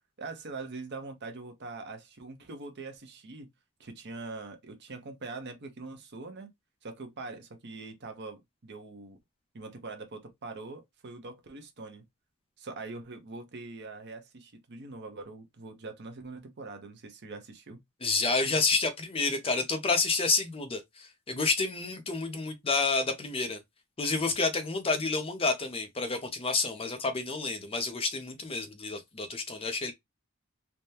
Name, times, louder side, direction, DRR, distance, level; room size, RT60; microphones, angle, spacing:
voice 1, 0.2-3.5 3.8-6.5 6.8-9.2 9.5-12.0 12.6-17.8, right 3 dB, 50° right, 0.7 m, -43 dB
voice 2, 18.0-23.6 24.0-29.9, left 4 dB, 25° left, 0.6 m, -29 dB
3.4 x 2.2 x 2.7 m
head